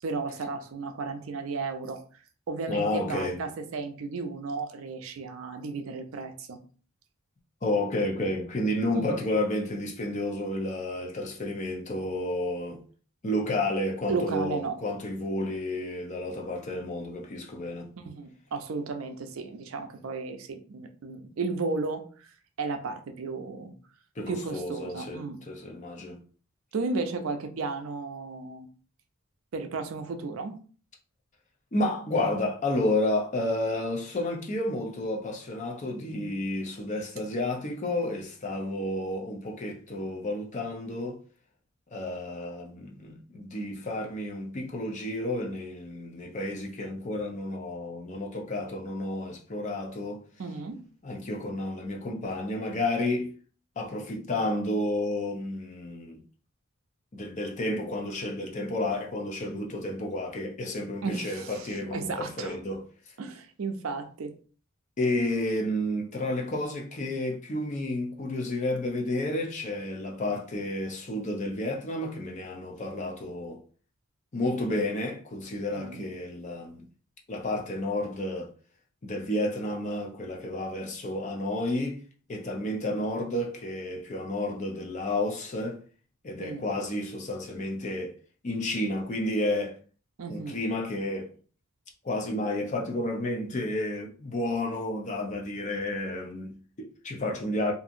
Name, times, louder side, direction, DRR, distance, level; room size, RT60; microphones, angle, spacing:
voice 1, 0.0-6.6 8.9-9.1 14.1-14.8 18.0-22.3 22.6-23.7 24.3-25.4 26.7-28.7 29.5-30.6 50.4-50.8 61.0-62.6 63.2-64.3 75.7-76.1 86.4-86.6 90.2-90.6, right 4 dB, 70° right, 0.4 m, -34 dB
voice 2, 2.7-3.4 7.6-12.8 13.2-17.9 24.2-26.2 31.7-41.2 41.9-50.2 51.0-53.3 53.8-56.2 57.1-62.9 65.0-73.6 74.3-76.8 77.3-78.5 79.0-82.0 82.3-85.8 86.2-88.1 88.4-89.8 90.3-91.3 92.0-97.7, left 1 dB, 35° left, 0.5 m, -31 dB
2.7 x 2.5 x 2.5 m
head